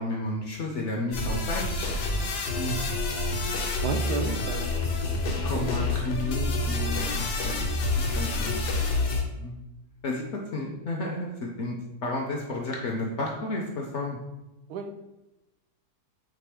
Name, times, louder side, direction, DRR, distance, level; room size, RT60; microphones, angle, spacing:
voice 1, 0.0-1.9 2.6-2.8 5.4-7.6 8.1-8.8 9.4-9.6 10.0-11.8 12.0-14.2, left 2 dB, 65° left, 0 dB, 0.7 m, -32 dB
sound 1, 1.1-9.2, left 2 dB, 85° left, 1.3 m, -28 dB
voice 2, 3.8-4.9 5.3-5.8 7.1-7.2 14.7-14.9, right 4 dB, 80° right, 5 dB, 1.1 m, -33 dB
5.0 x 3.0 x 3.4 m, 0.96 s
omnidirectional pair, 1.7 m